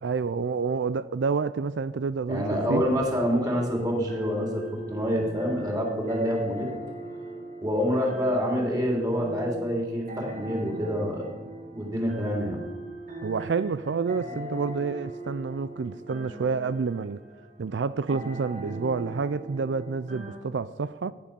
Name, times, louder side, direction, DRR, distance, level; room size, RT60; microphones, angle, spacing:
voice 1, 0.0-2.8 13.2-17.2 17.6-21.1, right 5 dB, 85° right, 0.4 m, -29 dB
voice 2, 2.3-6.7 7.6-11.2 11.7-12.6, equal, 20° right, 3.6 m, -27 dB
sound 1, 3.3-20.4, right 1 dB, 45° right, 1.9 m, -40 dB
14.5 x 9.9 x 6.8 m
head